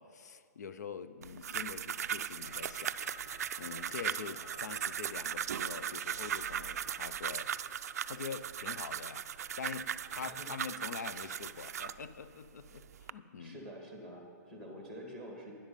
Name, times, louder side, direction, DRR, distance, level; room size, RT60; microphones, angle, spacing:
voice 1, 0.0-3.0 3.6-7.5 8.1-9.3 9.6-13.6, left 6 dB, 65° left, 12 dB, 0.7 m, -44 dB
sound 1, 1.2-12.0 12.6-13.1, right 9 dB, 60° right, 0.4 m, -38 dB
sound 2, 2.4-6.2, left 2 dB, 45° left, 2.2 m, -54 dB
voice 2, 10.2-10.5 13.4-15.5, equal, 5° left, 1 dB, 1.6 m, -47 dB
12.5 x 10.0 x 5.4 m, 2.1 s
hypercardioid pair, 170°, 10 cm